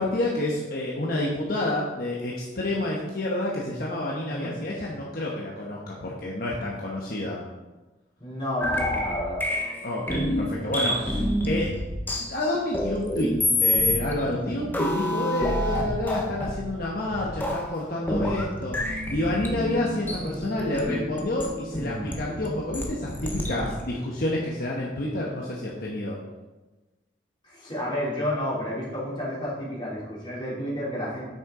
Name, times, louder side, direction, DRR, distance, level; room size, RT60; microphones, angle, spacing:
voice 1, 0.0-7.4 9.8-11.7 12.1-13.3 13.6-26.2, left 1 dB, 55° left, -3 dB, 1.1 m, -29 dB
voice 2, 8.2-9.4 27.4-31.3, left 1 dB, 30° left, -7 dB, 3.0 m, -31 dB
sound 1, 8.6-23.9, left 1 dB, 10° left, 0.9 m, -28 dB
sound 2, 18.8-23.9, left 1 dB, 40° right, 1.3 m, -38 dB
8.6 x 6.4 x 3.8 m, 1.2 s
head